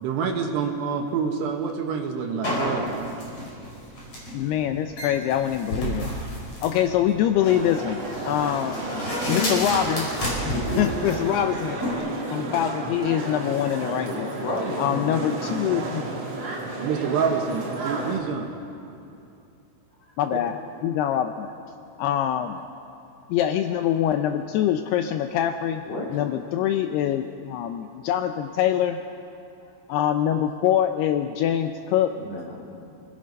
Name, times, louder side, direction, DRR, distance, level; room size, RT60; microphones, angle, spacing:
voice 1, 0.0-2.9 16.8-18.5, right 6 dB, 70° right, 3 dB, 3.1 m, -27 dB
sound 1, 2.4-11.9, equal, 30° left, 6.1 m, -30 dB
voice 2, 4.3-6.1 6.6-8.8 9.3-11.8 12.3-14.3 14.8-16.1 20.2-20.6 20.8-21.5 22.0-22.6 23.3-25.8 26.1-29.0 29.9-32.1, left 10 dB, 90° left, 7 dB, 2.3 m, -24 dB
sound 2, 7.4-18.2, right 2 dB, 40° right, 2.4 m, -33 dB
voice 3, 14.1-15.4 17.9-18.3 25.8-26.1 29.6-29.7 32.2-32.6, left 2 dB, 60° left, -3 dB, 5.2 m, -33 dB
28.5 x 18.5 x 5.4 m, 2.7 s
omnidirectional pair, 5.5 m